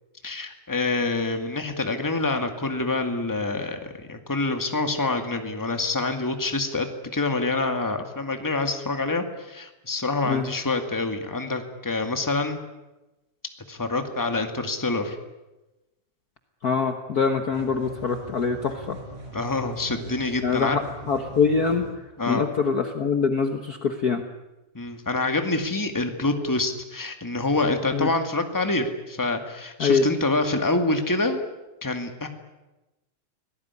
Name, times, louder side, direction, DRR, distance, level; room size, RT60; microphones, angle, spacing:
voice 1, 0.2-12.6 13.7-15.2 19.3-20.8 22.2-22.4 24.7-31.4 31.8-32.3, left 2 dB, 10° left, 6 dB, 1.5 m, -26 dB
voice 2, 16.6-19.0 20.4-24.2 27.9-28.1 29.8-30.1, left 5 dB, 60° left, 6 dB, 0.9 m, -24 dB
sound 1, 17.5-21.9, right 2 dB, 70° right, 6.8 m, -40 dB
25.5 x 18.0 x 9.7 m, 1.0 s
omnidirectional pair, 3.6 m